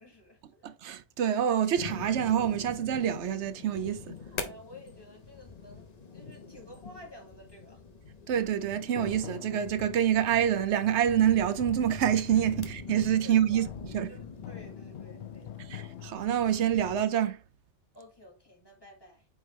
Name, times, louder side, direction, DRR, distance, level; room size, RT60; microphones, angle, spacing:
voice 1, 0.0-0.7 4.3-7.8 13.2-13.7 14.1-15.7 17.9-19.3, left 1 dB, 20° left, 1.8 m, -52 dB
voice 2, 0.6-4.2 8.3-13.7 13.9-14.1 15.7-17.4, right 10 dB, 90° right, 1.0 m, -27 dB
sound 1, 1.8-17.0, left 4 dB, 40° left, 0.9 m, -44 dB
sound 2, 8.3-16.1, left 13 dB, 80° left, 0.9 m, -46 dB
8.6 x 3.7 x 3.2 m
omnidirectional pair, 1.1 m